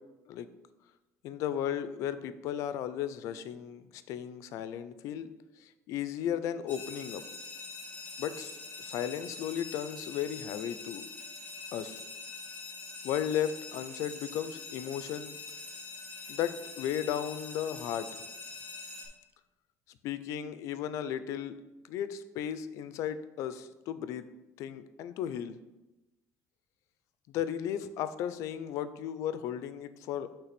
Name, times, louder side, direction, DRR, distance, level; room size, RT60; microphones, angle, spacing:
voice 1, 1.2-5.3 5.6-7.2 8.2-8.5 8.8-11.0 11.7-12.0 13.0-15.4 16.3-18.2 20.0-21.6 21.9-24.2 24.6-25.6 27.3-30.3, left 10 dB, 60° left, 13 dB, 0.4 m, -35 dB
sound 1, 6.7-19.1, left 3 dB, 20° left, 2.3 m, -44 dB
5.8 x 3.3 x 5.8 m, 1.0 s
cardioid pair, 175°, 6 cm